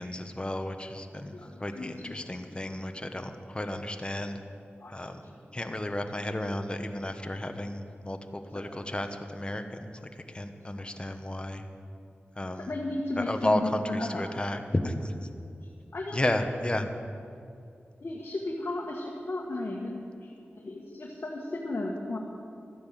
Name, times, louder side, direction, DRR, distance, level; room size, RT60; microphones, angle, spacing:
voice 1, 0.0-4.4 4.9-5.2 5.5-9.9 10.3-11.7 12.4-12.7 13.2-15.1 16.1-16.9, left 1 dB, 25° left, 6 dB, 1.2 m, -32 dB
voice 2, 1.3-2.8 4.8-5.1 8.5-8.6 12.7-14.3 15.6-16.3 18.0-22.2, left 2 dB, 55° left, -1 dB, 1.5 m, -35 dB
13.0 x 9.5 x 7.6 m, 2.5 s
cardioid pair, 50°, 4 cm